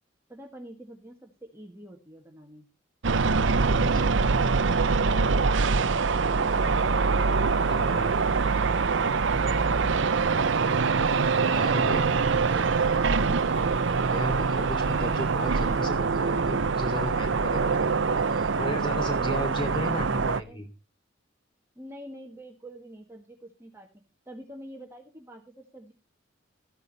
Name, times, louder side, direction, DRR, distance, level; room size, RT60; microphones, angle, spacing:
voice 1, 0.3-2.6 19.2-20.6 21.7-23.9 24.2-25.9, right 1 dB, 10° right, 1 dB, 1.6 m, -46 dB
sound 1, 3.0-20.4, right 4 dB, 75° right, 0.7 m, -24 dB
voice 2, 3.6-4.0 5.0-5.2 7.7-8.1 11.5-12.1 14.0-20.6, equal, 25° left, 5 dB, 3.1 m, -35 dB
Truck, 6.4-15.8, left 1 dB, 85° left, 7.6 m, -49 dB
14.0 x 9.7 x 4.0 m, 0.28 s
head